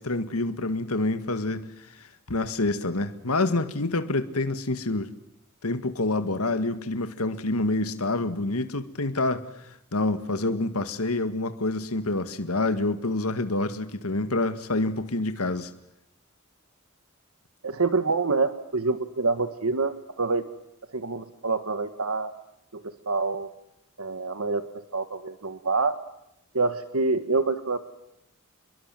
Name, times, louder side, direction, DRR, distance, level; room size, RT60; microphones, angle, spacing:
voice 1, 0.0-5.1 5.6-15.7, left 2 dB, 90° left, 10 dB, 1.9 m, -27 dB
voice 2, 17.6-20.4 20.9-22.3 22.7-23.5 24.0-24.6 24.9-26.0 26.5-27.8, right 3 dB, 75° right, 10 dB, 1.6 m, -26 dB
29.0 x 22.5 x 7.7 m, 0.80 s
head